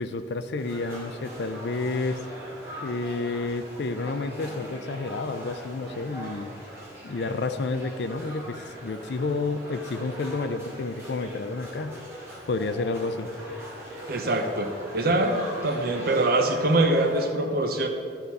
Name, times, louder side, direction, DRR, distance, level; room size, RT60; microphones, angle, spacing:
voice 1, 0.0-2.2 2.8-6.5 7.0-12.0 12.5-13.3, left 3 dB, 65° left, 11 dB, 0.5 m, -30 dB
sound 1, 0.6-17.3, equal, 15° right, 2.5 m, -41 dB
voice 2, 14.1-17.9, right 2 dB, 55° right, 5 dB, 0.8 m, -24 dB
11.5 x 6.5 x 4.1 m, 2.3 s
head